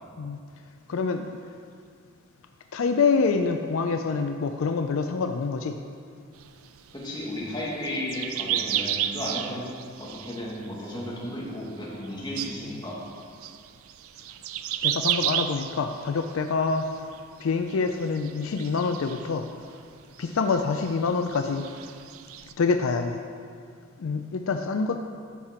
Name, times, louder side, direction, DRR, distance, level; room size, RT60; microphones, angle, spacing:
voice 1, 0.9-1.3 2.7-5.8 14.8-16.9 17.4-19.5 20.2-21.7 22.6-23.2 24.0-25.0, left 4 dB, 70° left, 6 dB, 0.4 m, -26 dB
sound 1, 6.4-11.3 11.5-12.1 12.4-17.4 17.7-19.8 20.0-22.5, right 11 dB, 75° right, 0.4 m, -33 dB
voice 2, 6.9-13.0, left 1 dB, 20° left, -6 dB, 1.8 m, -34 dB
12.5 x 5.7 x 4.3 m, 2.3 s
head